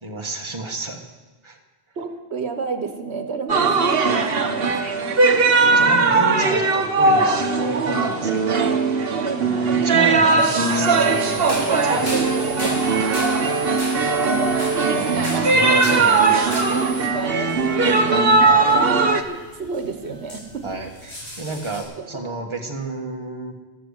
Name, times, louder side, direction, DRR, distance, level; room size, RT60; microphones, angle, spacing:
voice 1, 0.0-1.0 1.4-1.6 5.5-8.7 9.4-12.1 12.6-13.1 14.9-16.9 18.4-18.8 20.6-23.5, right 2 dB, 25° right, 2 dB, 1.6 m, -31 dB
voice 2, 2.0-5.1 6.5-6.7 8.2-8.3 9.1-9.8 11.6-12.2 12.5-12.6 13.1-13.2 13.7-14.6 16.7-18.3 18.7-20.7 21.7-21.8 22.1-22.2, right 4 dB, 85° right, 7 dB, 1.4 m, -31 dB
sound 1, 3.5-19.2, right 3 dB, 65° right, 1.3 m, -19 dB
sound 2, 10.4-17.1, right 4 dB, 30° left, 7.2 m, -37 dB
sound 3, 11.0-21.8, equal, 80° left, 6.2 m, -37 dB
14.0 x 13.5 x 6.6 m, 1.2 s
omnidirectional pair, 1.1 m